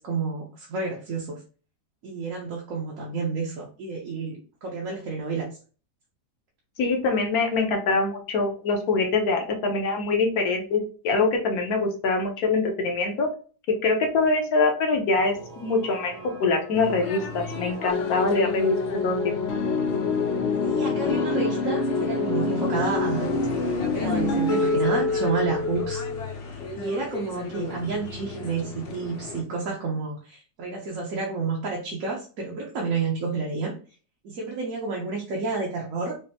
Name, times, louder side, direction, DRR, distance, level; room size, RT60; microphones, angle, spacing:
voice 1, 0.0-1.4 2.0-5.5 20.6-23.3 23.9-26.0 26.8-33.7 34.2-36.2, right 4 dB, 65° right, -2 dB, 1.1 m, -30 dB
voice 2, 6.8-13.3 13.8-19.2, left 3 dB, 70° left, 3 dB, 1.3 m, -24 dB
sound 1, 15.2-25.8, right 2 dB, 40° right, 0.6 m, -42 dB
sound 2, 16.7-29.4, left 3 dB, 55° left, 0.7 m, -38 dB
sound 3, 17.9-26.3, left 4 dB, 90° left, 0.5 m, -26 dB
5.2 x 2.0 x 2.8 m, 0.38 s
omnidirectional pair, 1.7 m